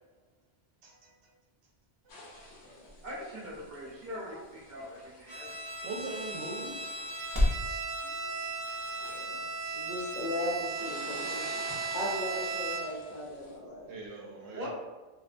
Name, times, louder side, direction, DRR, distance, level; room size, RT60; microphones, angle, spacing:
voice 1, 0.8-1.3 2.0-2.1 2.4-2.5 4.2-4.4 5.8-6.8 7.1-7.3 8.0-8.3 9.6-9.7 13.9-14.7, right 3 dB, 80° right, -1 dB, 0.9 m, -42 dB
sound 1, 1.4-7.7, left 1 dB, 30° right, 0.5 m, -37 dB
sound 2, 2.1-13.6, left 1 dB, 80° left, 1.0 m, -50 dB
voice 2, 3.0-5.5 14.5-14.7, equal, 45° right, -7 dB, 1.0 m, -42 dB
Bowed string instrument, 5.3-13.1, right 3 dB, 35° left, 1.2 m, -37 dB
voice 3, 9.0-9.4 9.7-11.5 11.9-13.9, left 1 dB, 55° left, -5 dB, 0.6 m, -37 dB
2.6 x 2.1 x 2.4 m, 1.2 s
omnidirectional pair, 1.1 m